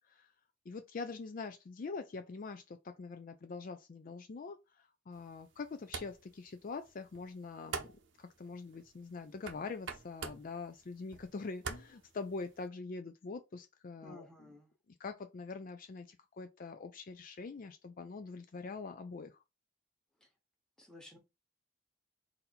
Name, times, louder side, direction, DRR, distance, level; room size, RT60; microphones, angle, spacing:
voice 1, 0.7-7.9 8.2-14.5 15.0-19.4, left 4 dB, 45° left, 0.4 m, -44 dB
sound 1, 5.1-12.7, right 5 dB, 70° right, 0.7 m, -48 dB
voice 2, 14.0-14.7 20.8-21.2, left 1 dB, 5° left, 1.1 m, -54 dB
4.1 x 2.7 x 4.1 m
head